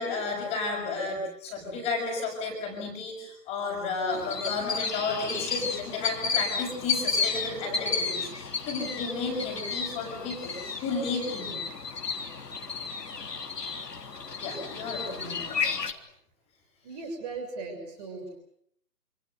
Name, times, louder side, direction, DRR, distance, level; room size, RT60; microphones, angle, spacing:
voice 1, 0.0-11.6 14.4-15.8, left 3 dB, 10° left, 0 dB, 6.4 m, -32 dB
sound 1, 4.1-15.9, left 5 dB, 70° left, 3.6 m, -32 dB
voice 2, 16.8-18.4, right 3 dB, 25° right, 5 dB, 6.8 m, -38 dB
29.5 x 28.0 x 6.7 m, 0.69 s
figure-of-eight pair, 155°, 50 cm